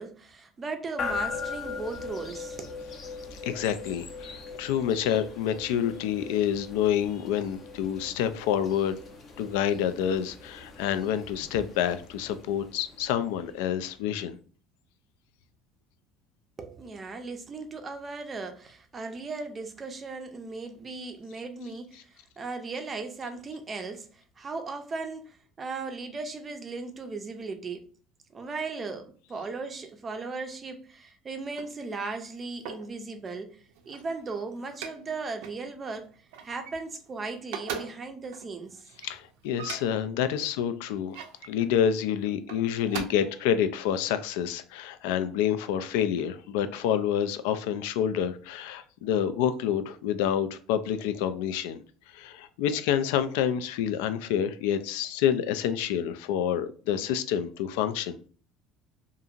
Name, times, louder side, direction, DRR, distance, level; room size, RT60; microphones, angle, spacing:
voice 1, 0.0-2.8 16.6-27.9 28.3-36.1 36.4-38.9 40.4-40.5, right 3 dB, 25° right, 0.5 m, -37 dB
sound 1, 1.0-14.0, left 4 dB, 35° left, 0.5 m, -40 dB
voice 2, 3.4-8.9 9.4-14.4 39.0-41.2 41.4-51.8 52.1-58.2, left 9 dB, 80° left, 0.3 m, -28 dB
sound 2, 31.4-33.0 33.6-35.1 35.4-35.6 36.0-37.1 37.4-40.1 40.8-41.5 42.3-43.0, right 7 dB, 80° right, 0.5 m, -41 dB
2.8 x 2.5 x 2.4 m
cardioid pair, 140°, 0 cm